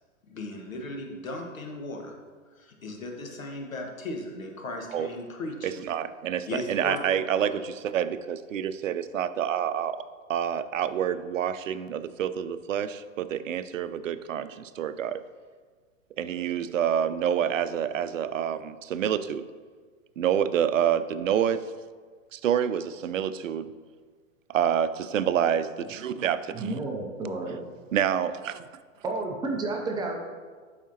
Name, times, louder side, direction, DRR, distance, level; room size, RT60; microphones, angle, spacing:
voice 1, 0.3-2.1 2.6-5.7 6.5-7.0 7.4-7.5, left 2 dB, 80° left, 1 dB, 1.6 m, -36 dB
voice 2, 5.6-10.0 10.3-15.2 16.2-19.5 20.2-21.6 22.3-23.7 24.5-26.8 27.9-28.7, right 9 dB, 70° right, 13 dB, 0.6 m, -27 dB
voice 3, 26.5-27.6 29.0-30.1, right 3 dB, 10° right, 1 dB, 0.4 m, -31 dB
11.5 x 4.9 x 2.8 m, 1.5 s
hypercardioid pair, 115°, 40 cm